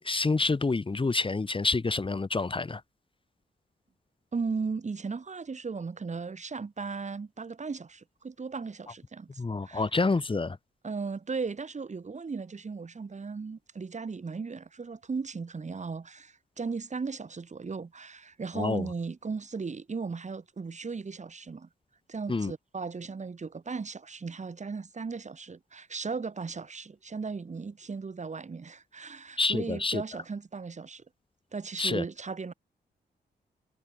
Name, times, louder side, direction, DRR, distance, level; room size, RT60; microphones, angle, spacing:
voice 1, 0.0-2.8 9.4-10.6 18.5-18.9 22.3-22.5 29.4-30.0 31.8-32.0, left 3 dB, 30° left, 2.1 m, -28 dB
voice 2, 4.3-9.9 10.8-21.7 22.1-31.0 31.5-32.5, right 4 dB, 40° right, 4.8 m, -36 dB
cardioid pair, 75°, 18 cm